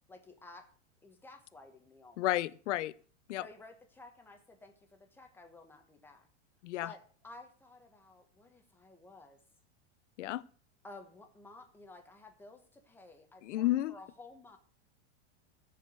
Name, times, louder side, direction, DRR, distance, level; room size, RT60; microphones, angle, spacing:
voice 1, 0.1-0.7 1.0-2.3 3.4-6.3 6.8-9.4 10.8-14.6, left 2 dB, 5° left, 1.1 m, -54 dB
voice 2, 2.2-2.9 3.3-3.5 6.6-6.9 10.2-10.4 13.4-13.9, left 15 dB, 75° left, 0.7 m, -32 dB
14.5 x 5.1 x 6.6 m
supercardioid pair, 165°, 36 cm